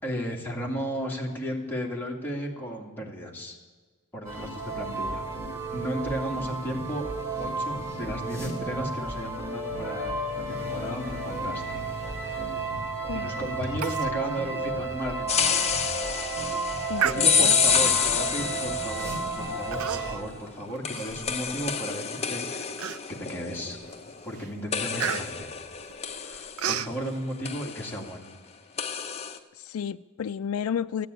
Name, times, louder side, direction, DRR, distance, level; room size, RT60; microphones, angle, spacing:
voice 1, 0.0-3.6 4.1-5.2 5.7-7.0 7.4-10.1 10.5-11.8 12.2-12.5 13.1-15.6 17.0-22.7 23.2-23.8 24.2-25.5 26.1-28.3, equal, 10° left, -2 dB, 2.4 m, -34 dB
sound 1, 4.2-20.2, right 2 dB, 15° right, 3.1 m, -32 dB
Human voice, 13.8-14.1 14.5-14.6 15.1-15.2 15.7-16.0 17.0-17.7 18.4-18.7 19.7-20.3 20.7-21.7 22.2-22.3 22.8-23.4 23.8-24.1 24.3-26.9, right 8 dB, 75° right, 0.5 m, -32 dB
sound 2, 15.3-19.5 20.9-24.4 24.7-27.1 27.5-28.0 28.8-29.4, left 6 dB, 30° left, 0.8 m, -28 dB
voice 2, 16.9-17.9 29.5-31.1, left 8 dB, 70° left, 10 dB, 0.4 m, -32 dB
14.5 x 9.5 x 9.3 m, 1.4 s
head